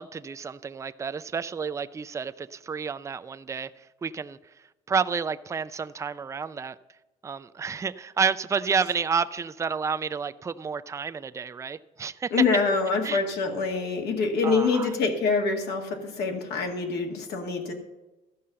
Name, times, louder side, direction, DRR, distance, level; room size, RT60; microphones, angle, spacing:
voice 1, 0.0-3.7 4.0-4.4 4.9-6.8 7.2-12.3 13.0-13.2 14.4-14.9, right 5 dB, 15° right, 13 dB, 0.4 m, -30 dB
voice 2, 12.3-17.7, left 4 dB, 75° left, 2 dB, 2.1 m, -25 dB
13.0 x 5.5 x 7.5 m, 1.0 s
cardioid pair, 110°, 17 cm